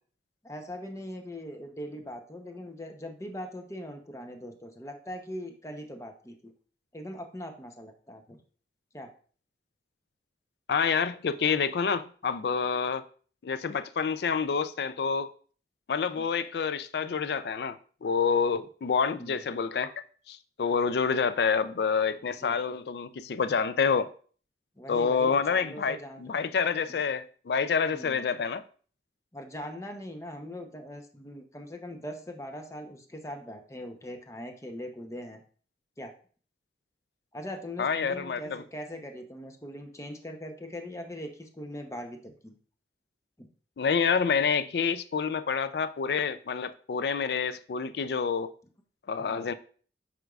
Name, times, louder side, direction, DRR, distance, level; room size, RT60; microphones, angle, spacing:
voice 1, 0.4-6.5 6.9-8.4 8.9-9.1 16.2-16.3 19.2-19.4 22.4-22.6 24.8-26.2 27.9-28.2 29.3-35.4 36.0-36.1 37.3-42.6 43.4-43.5 49.2-49.5, equal, 15° left, 0.7 m, -41 dB
voice 2, 10.7-13.0 13.4-15.3 15.9-19.9 20.3-24.1 24.9-28.6 37.8-38.6 43.8-48.5 49.1-49.5, left 6 dB, 65° left, 0.4 m, -28 dB
7.9 x 5.1 x 2.4 m
head